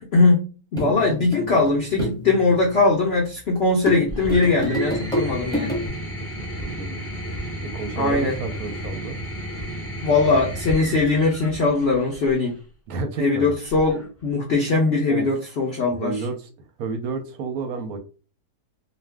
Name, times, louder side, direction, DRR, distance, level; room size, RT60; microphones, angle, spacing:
voice 1, 0.1-5.7 8.0-8.4 10.0-12.6 13.2-16.2, left 3 dB, 75° left, 0 dB, 0.6 m, -20 dB
sound 1, 0.7-3.1 3.9-5.9, left 1 dB, 5° left, 0.8 m, -29 dB
sound 2, 4.1-12.5 13.7-14.3, right 1 dB, 20° left, 0.4 m, -33 dB
voice 2, 6.4-7.0 7.6-9.2 12.9-13.5 15.1-15.3 15.9-16.5 16.8-18.0, right 4 dB, 70° right, 6 dB, 0.9 m, -31 dB
2.5 x 2.3 x 3.3 m, 0.35 s
omnidirectional pair, 1.7 m